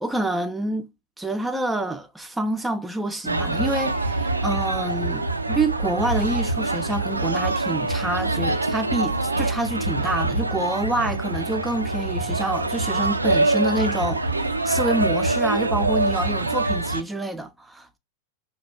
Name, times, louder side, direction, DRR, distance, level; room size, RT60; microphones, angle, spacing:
voice 1, 0.0-0.9 1.2-18.0, right 2 dB, 10° right, 0.5 m, -27 dB
sound 1, 3.3-17.0, right 2 dB, 80° right, 0.4 m, -24 dB
5.5 x 2.2 x 2.2 m
figure-of-eight pair, 90°, 0 cm